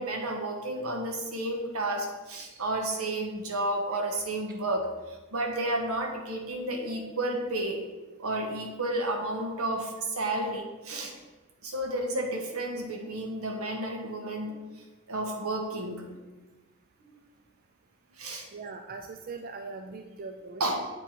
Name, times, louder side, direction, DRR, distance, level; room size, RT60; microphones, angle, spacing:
voice 1, 0.0-7.8 8.2-11.1 11.6-16.2 18.2-18.5 20.6-20.8, right 1 dB, 80° right, 2 dB, 1.2 m, -32 dB
voice 2, 18.5-20.6, right 4 dB, 40° right, 5 dB, 0.4 m, -40 dB
8.1 x 4.3 x 4.4 m, 1.2 s
head